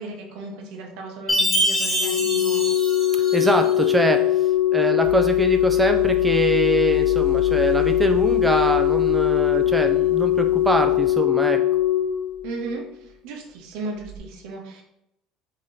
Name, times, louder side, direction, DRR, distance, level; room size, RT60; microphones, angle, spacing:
voice 1, 0.0-2.6 12.4-14.8, right 3 dB, 75° right, 0 dB, 0.9 m, -35 dB
Chime, 1.3-3.8, equal, 15° left, 1.4 m, -25 dB
Organ, 2.0-12.9 14.0-14.2, left 13 dB, 75° left, 1.2 m, -21 dB
voice 2, 3.3-11.6, right 2 dB, 10° right, 5 dB, 0.3 m, -24 dB
sound 1, 5.0-11.1, left 7 dB, 50° left, 0.7 m, -34 dB
3.8 x 2.7 x 3.2 m, 0.81 s
cardioid pair, 135°, 0 cm